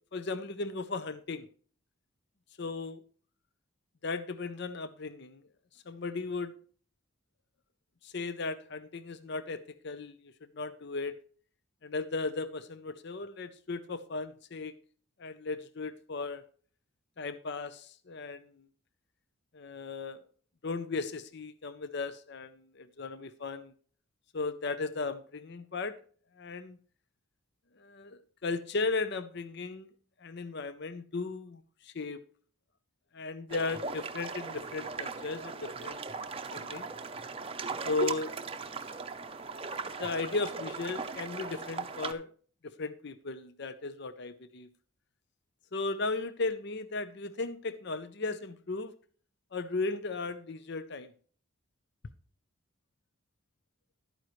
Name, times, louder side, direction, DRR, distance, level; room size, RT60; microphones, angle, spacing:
voice 1, 0.1-1.5 2.6-3.0 4.0-5.4 5.9-6.6 8.0-11.2 11.8-14.7 15.2-16.4 17.2-18.6 19.5-20.3 20.6-23.7 24.3-26.0 26.4-26.8 27.8-29.9 30.2-32.2 33.1-36.0 36.5-36.9 37.8-38.3 40.0-42.3 42.6-44.7 45.7-48.9 49.5-51.1, left 3 dB, 50° left, 0.6 m, -36 dB
sound 1, 33.5-42.1, right 4 dB, 25° right, 0.6 m, -38 dB
12.0 x 9.1 x 3.1 m
head